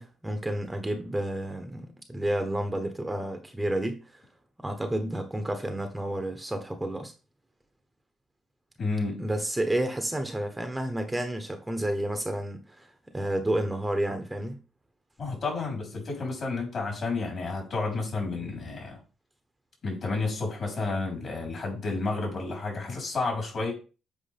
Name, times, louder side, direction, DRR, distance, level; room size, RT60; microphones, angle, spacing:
voice 1, 0.0-4.2 4.6-7.1 9.2-14.6, right 1 dB, 10° right, 1.0 m, -30 dB
voice 2, 8.8-9.3 15.2-19.0 19.8-23.7, left 3 dB, 50° left, 4.1 m, -31 dB
7.9 x 4.8 x 3.4 m
cardioid pair, 90°, 0 cm